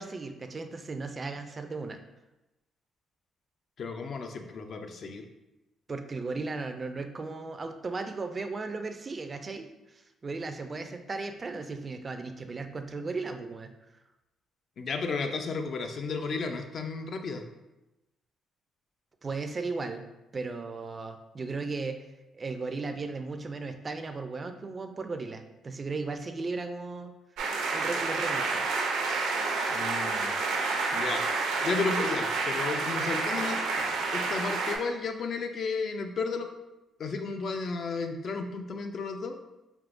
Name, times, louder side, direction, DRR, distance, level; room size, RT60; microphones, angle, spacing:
voice 1, 0.0-2.0 5.9-13.7 19.2-20.0 20.3-22.0 22.3-27.2 27.7-28.6, right 3 dB, 35° right, 7 dB, 0.3 m, -36 dB
voice 2, 3.8-5.3 14.8-17.4 29.7-30.4 30.9-31.2 31.6-33.6 34.1-36.5 37.0-39.4, left 4 dB, 55° left, 6 dB, 0.4 m, -33 dB
sound 1, 27.4-34.8, right 3 dB, 85° right, 0.5 m, -29 dB
3.5 x 2.8 x 2.5 m, 0.98 s
cardioid pair, 90°, 0 cm